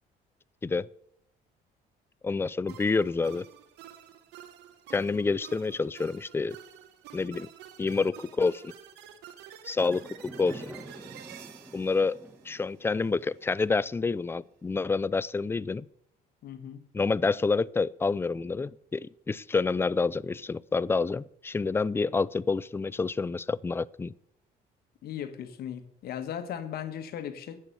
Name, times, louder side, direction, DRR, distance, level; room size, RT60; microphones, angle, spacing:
voice 1, 2.2-3.5 4.9-6.6 7.1-7.5 7.8-8.7 9.7-10.7 11.7-12.2 12.5-15.9 16.9-24.1, left 4 dB, 15° left, 0.3 m, -28 dB
sound 1, 2.7-13.1, right 10 dB, 85° right, 1.4 m, -49 dB
Fireworks, 9.8-14.3, right 1 dB, 10° right, 1.7 m, -47 dB
voice 2, 16.4-16.8 25.0-27.6, left 9 dB, 65° left, 1.5 m, -37 dB
10.5 x 7.8 x 6.9 m
cardioid pair, 110°, 17 cm